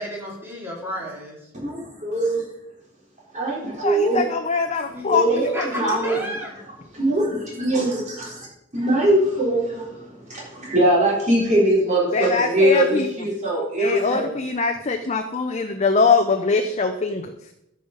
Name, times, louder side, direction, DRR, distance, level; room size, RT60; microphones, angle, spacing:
voice 1, 0.0-1.4 4.9-6.6, equal, 10° right, -3 dB, 2.7 m, -31 dB
voice 2, 1.6-2.4 3.3-4.2 5.1-5.5 5.8-6.2 7.0-8.3 8.7-9.9 10.3-14.3, right 1 dB, 35° right, -4 dB, 3.7 m, -21 dB
voice 3, 3.8-5.3 5.8-6.2 12.1-13.1 13.8-17.3, left 4 dB, 35° left, 5 dB, 0.6 m, -22 dB
13.5 x 5.6 x 5.1 m, 0.82 s
head